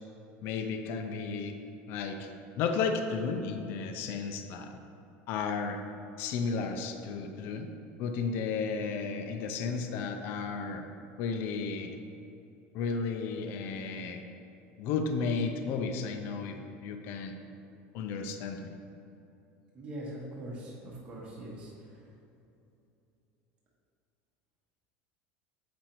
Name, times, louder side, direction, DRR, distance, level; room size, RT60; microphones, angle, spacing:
voice 1, 0.4-1.5 1.9-2.3 2.6-4.7 5.3-5.8 6.2-7.7 8.0-10.9 11.2-11.9 12.7-14.2 14.8-17.3 17.9-18.7, left 5 dB, 45° left, 5 dB, 0.5 m, -33 dB
voice 2, 19.7-22.0, right 1 dB, 20° right, -5 dB, 1.0 m, -42 dB
7.8 x 5.1 x 4.4 m, 2.8 s
cardioid pair, 180°, 5 cm